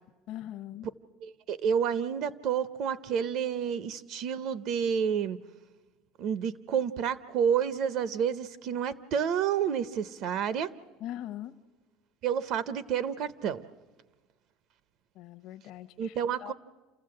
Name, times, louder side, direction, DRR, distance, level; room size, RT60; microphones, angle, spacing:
voice 1, 0.3-0.9 11.0-11.6 15.1-16.5, left 12 dB, 50° left, 6 dB, 0.7 m, -41 dB
voice 2, 1.2-5.4 6.2-10.7 12.2-13.6 16.0-16.5, right 8 dB, 50° right, 16 dB, 0.6 m, -29 dB
28.0 x 14.5 x 7.7 m, 1.3 s
cardioid pair, 160°, 0 cm